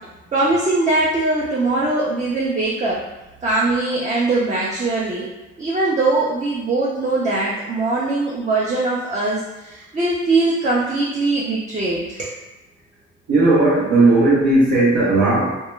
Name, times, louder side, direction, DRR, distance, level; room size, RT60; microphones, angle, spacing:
voice 1, 0.3-3.0 3.4-5.3 5.6-12.3, right 2 dB, 25° right, -6 dB, 0.4 m, -21 dB
voice 2, 13.3-15.5, right 2 dB, 70° right, -9 dB, 0.8 m, -15 dB
2.1 x 2.1 x 3.1 m, 1.0 s
cardioid pair, 90°, 30 cm